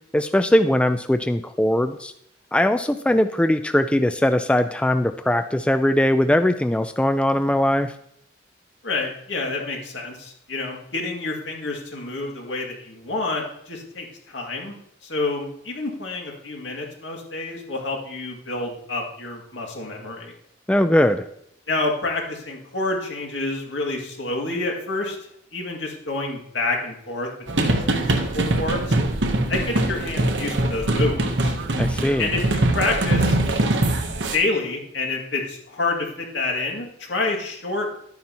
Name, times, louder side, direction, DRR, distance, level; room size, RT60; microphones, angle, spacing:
voice 1, 0.1-2.1 2.5-7.9 20.7-21.2 31.8-32.3, left 1 dB, 5° left, 9 dB, 0.3 m, -20 dB
voice 2, 8.8-14.7 15.0-20.3 21.7-25.2 25.5-27.3 27.6-28.9 29.5-31.5 32.2-33.4 34.3-37.9, left 2 dB, 80° left, 0 dB, 2.3 m, -28 dB
sound 1, 27.5-34.4, right 1 dB, 75° right, 1.0 m, -22 dB
12.0 x 9.3 x 2.9 m, 0.71 s
head